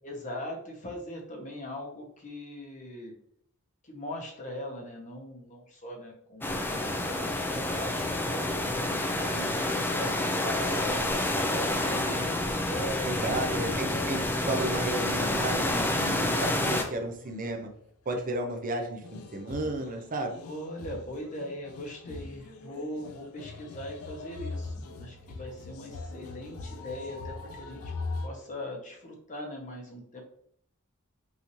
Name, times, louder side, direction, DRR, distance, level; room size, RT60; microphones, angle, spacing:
voice 1, 0.0-3.1 3.8-6.6 7.0-8.6 8.9-14.1 20.4-27.8 28.2-30.2, left 1 dB, 35° left, 1 dB, 1.0 m, -40 dB
sound 1, 6.4-16.8, left 1 dB, 10° left, 0.5 m, -29 dB
voice 2, 13.1-14.2 14.5-17.7 18.1-20.4, right 2 dB, 40° right, 3 dB, 0.6 m, -33 dB
sound 2, 17.2-17.3 19.0-28.3, left 3 dB, 90° left, 0.5 m, -41 dB
5.6 x 2.7 x 3.1 m, 0.66 s
head